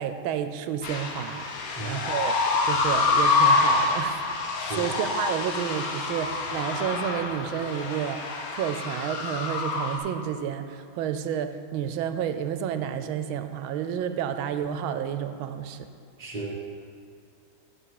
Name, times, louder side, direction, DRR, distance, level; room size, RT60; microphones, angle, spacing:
voice 1, 0.0-2.4 2.6-4.2 4.7-15.9, right 9 dB, 85° right, 10 dB, 1.4 m, -30 dB
sound 1, 0.8-10.0, left 3 dB, 60° left, 1.0 m, -26 dB
voice 2, 4.6-4.9 16.2-16.5, right 2 dB, 30° right, -2 dB, 0.8 m, -35 dB
7.8 x 5.6 x 6.4 m, 2.2 s
omnidirectional pair, 2.2 m